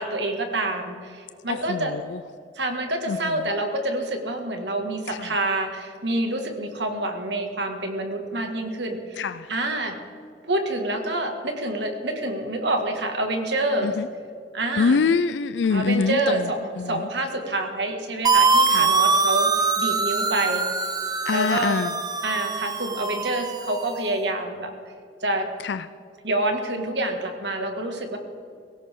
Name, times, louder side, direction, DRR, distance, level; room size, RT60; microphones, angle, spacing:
voice 1, 0.0-2.0 2.6-9.9 10.4-14.0 14.5-15.0 15.7-19.5 19.8-20.6 21.3-21.8 22.2-24.7 25.2-25.5 26.2-28.2, right 1 dB, 70° right, 2.0 m, -27 dB
voice 2, 1.5-1.8 3.1-3.2 9.2-9.3 13.8-14.0 14.8-16.4 16.8-16.9 18.7-18.9 21.3-21.9 25.7-25.8, left 5 dB, 70° left, 0.4 m, -23 dB
sound 1, 18.2-24.0, right 4 dB, 20° right, 0.8 m, -23 dB
17.5 x 17.0 x 3.8 m
head